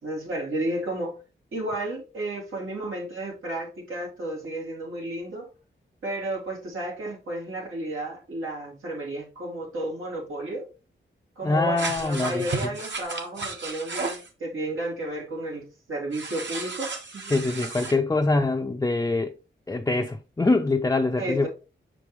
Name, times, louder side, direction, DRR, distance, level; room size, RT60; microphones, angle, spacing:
voice 1, 0.0-1.2 1.5-5.5 6.0-10.6 11.4-17.5 21.2-21.5, right 1 dB, 90° right, 3.1 m, -32 dB
voice 2, 11.4-12.5 17.3-19.4 19.7-21.5, left 2 dB, 15° left, 0.5 m, -24 dB
sound 1, 11.8-14.3 16.1-18.0, right 3 dB, 60° right, 1.5 m, -33 dB
5.9 x 4.9 x 3.2 m
cardioid pair, 75°, 21 cm